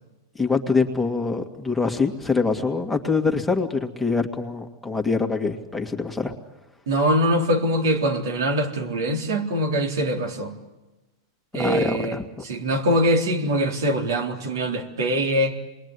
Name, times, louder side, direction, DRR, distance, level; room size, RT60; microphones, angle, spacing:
voice 1, 0.4-6.3 11.5-12.2, left 4 dB, 5° left, 3 dB, 2.2 m, -24 dB
voice 2, 6.9-10.5 11.5-15.6, equal, 80° right, 3 dB, 3.8 m, -23 dB
27.5 x 21.5 x 9.9 m, 1.0 s
hypercardioid pair, 125°, 2 cm